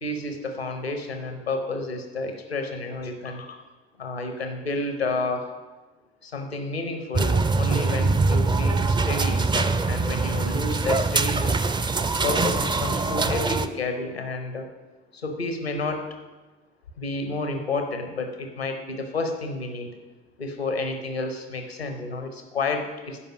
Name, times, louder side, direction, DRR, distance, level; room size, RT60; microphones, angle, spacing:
voice 1, 0.0-3.6 4.0-5.5 6.2-11.6 12.2-14.7 15.1-16.1 17.0-19.9 20.4-23.2, left 3 dB, 90° left, 5 dB, 0.8 m, -30 dB
chicken run, 7.1-13.7, right 3 dB, 15° right, 0.4 m, -23 dB
9.7 x 5.2 x 6.0 m, 1.3 s
figure-of-eight pair, 50°, 30 cm